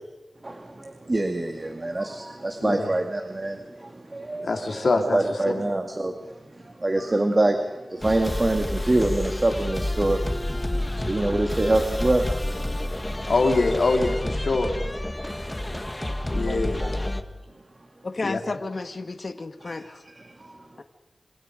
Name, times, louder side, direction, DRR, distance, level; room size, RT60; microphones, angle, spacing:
voice 1, 0.4-4.9 5.1-12.3 12.6-12.9 15.2-16.9 19.7-19.9 20.2-20.8, right 2 dB, 35° right, 5 dB, 2.3 m, -26 dB
voice 2, 2.6-2.9 4.4-5.2 13.3-14.7 16.2-16.9 18.2-18.4, left 3 dB, 75° left, 3 dB, 3.6 m, -24 dB
sound 1, 8.0-17.2, left 1 dB, 20° left, 1.8 m, -29 dB
voice 3, 18.0-20.0 20.8-20.9, left 3 dB, 55° left, 8 dB, 1.8 m, -32 dB
28.0 x 27.0 x 5.2 m, 1.1 s
wide cardioid pair, 70°, 0 cm